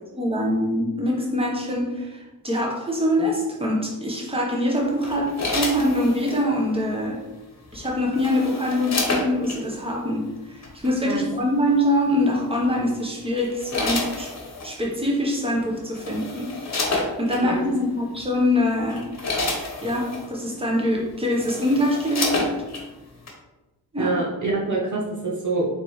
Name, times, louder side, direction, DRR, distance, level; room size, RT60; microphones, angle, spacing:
voice 1, 0.1-7.2 7.7-14.3 14.6-16.5 17.2-19.1 19.8-22.5 23.9-24.1, left 1 dB, 15° right, -2 dB, 1.2 m, -24 dB
sound 1, 5.0-6.4 7.7-9.6 10.6-10.9 12.5-12.8 13.4-14.7 15.5-15.6 15.9-17.4 18.2-18.3 18.8-20.3 20.9-21.0 21.3-22.9 23.3-23.4, left 2 dB, 45° left, 1.1 m, -29 dB
voice 2, 24.0-25.7, right 3 dB, 55° right, -4 dB, 0.9 m, -25 dB
3.9 x 3.5 x 3.2 m, 1.1 s
cardioid pair, 60°, 37 cm